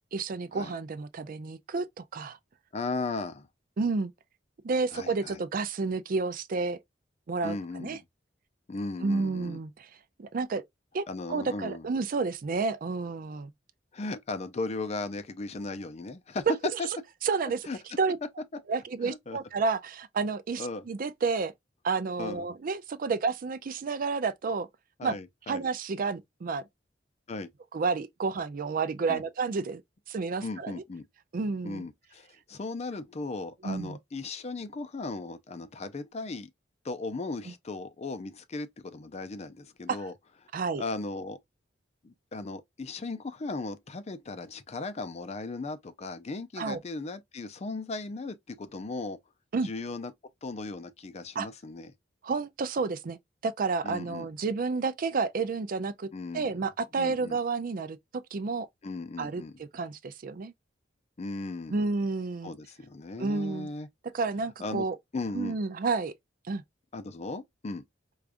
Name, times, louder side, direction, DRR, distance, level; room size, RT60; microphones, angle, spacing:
voice 1, 0.1-2.4 3.8-4.1 4.6-6.8 7.3-8.0 9.0-9.9 10.2-10.6 10.9-11.0 11.3-13.5 17.2-17.7 18.0-18.2 18.7-21.5 21.8-24.7 25.0-25.1 25.5-26.6 27.7-29.8 30.1-30.8 31.3-31.9 33.6-34.0 39.9-40.0 40.5-40.8 46.6-46.8 49.5-49.7 51.4-51.5 52.2-56.1 56.3-58.0 58.3-58.7 59.2-60.5 61.7-62.5 63.2-63.7 64.1-65.0 65.3-66.1 66.5-66.6, right 4 dB, 50° right, 0.4 m, -30 dB
voice 2, 2.7-3.5 4.9-5.4 7.4-8.0 8.7-9.6 11.1-11.9 13.9-16.4 17.7-17.8 19.0-19.4 20.6-20.8 22.2-22.5 25.0-25.7 27.3-27.5 29.1-29.2 30.4-31.1 31.6-36.5 36.8-40.1 40.8-41.4 42.0-49.2 49.6-50.1 50.4-51.9 53.8-54.3 56.1-56.5 56.9-57.4 58.8-59.5 61.2-61.8 62.4-63.9 64.6-64.9 65.1-65.6 66.9-67.8, left 3 dB, 35° left, 0.4 m, -37 dB
4.8 x 2.3 x 2.5 m
head